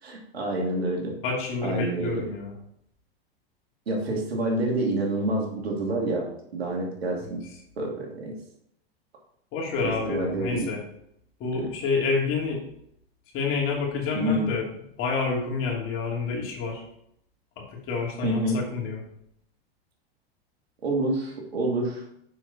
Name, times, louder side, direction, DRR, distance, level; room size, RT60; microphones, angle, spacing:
voice 1, 0.0-1.1 1.6-2.2 3.9-7.4 7.8-8.3 9.8-10.7 11.5-11.7 14.1-14.4 18.2-18.6 20.8-22.0, right 1 dB, 85° right, -1 dB, 2.6 m, -28 dB
voice 2, 1.2-2.5 9.5-10.8 11.4-12.6 13.3-14.7 15.0-16.8 17.6-19.0, left 4 dB, 45° left, -1 dB, 2.8 m, -28 dB
7.0 x 6.2 x 4.2 m, 0.74 s
hypercardioid pair, 105°, 31 cm